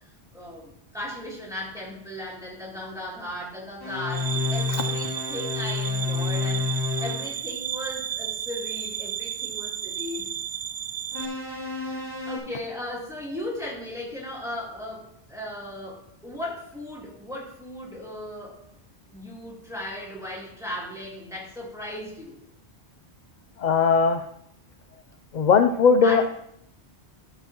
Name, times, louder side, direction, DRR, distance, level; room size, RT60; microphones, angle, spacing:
voice 1, 0.3-6.6 7.0-10.3 11.4-15.0 15.3-18.6 19.1-22.4 26.0-26.3, left 1 dB, 5° right, -7 dB, 3.1 m, -37 dB
sound 1, 3.8-7.3 11.1-12.4, left 4 dB, 20° right, 2.5 m, -29 dB
sound 2, 4.1-11.3, right 9 dB, 55° right, 0.4 m, -33 dB
voice 2, 23.6-24.2 25.3-26.2, left 5 dB, 55° left, 7 dB, 0.5 m, -19 dB
12.0 x 6.9 x 2.9 m, 0.73 s
omnidirectional pair, 1.1 m